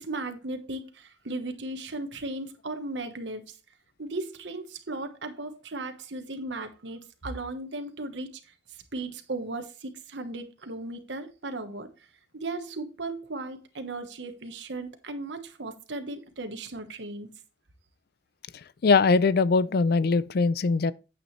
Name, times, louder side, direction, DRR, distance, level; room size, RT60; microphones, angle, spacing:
voice 1, 0.0-3.5 4.0-8.3 8.7-11.9 12.3-17.3, right 2 dB, 70° right, 1.2 m, -36 dB
voice 2, 18.8-20.9, left 4 dB, 55° left, 0.4 m, -21 dB
9.2 x 7.7 x 3.2 m
head